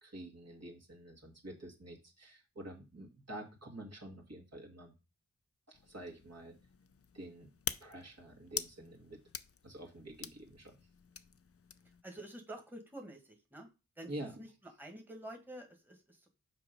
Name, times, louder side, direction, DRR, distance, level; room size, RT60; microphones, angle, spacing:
voice 1, 0.0-4.9 5.7-6.6 7.1-7.5 7.8-9.2 9.6-10.8 14.1-14.4, right 1 dB, 55° right, 0 dB, 2.2 m, -48 dB
sound 1, 5.7-12.0, left 6 dB, 45° left, 0.6 m, -46 dB
voice 2, 12.0-13.7 14.0-14.1 14.4-14.5 14.8-16.3, right 1 dB, 5° right, 4 dB, 1.6 m, -48 dB
5.9 x 4.6 x 5.3 m, 0.29 s
cardioid pair, 40°, 32 cm